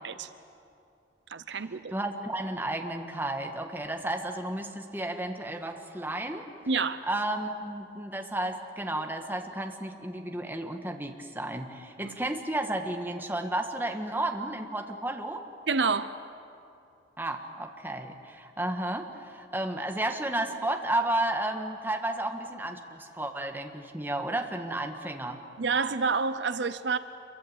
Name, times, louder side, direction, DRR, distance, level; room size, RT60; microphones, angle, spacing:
voice 1, 1.3-1.9 6.7-7.1 12.0-12.2 15.7-16.1 25.6-27.0, right 4 dB, 75° right, 0.7 m, -28 dB
voice 2, 1.9-6.5 7.1-15.4 17.2-25.4, right 1 dB, 10° right, 1.7 m, -32 dB
27.5 x 23.5 x 8.1 m
head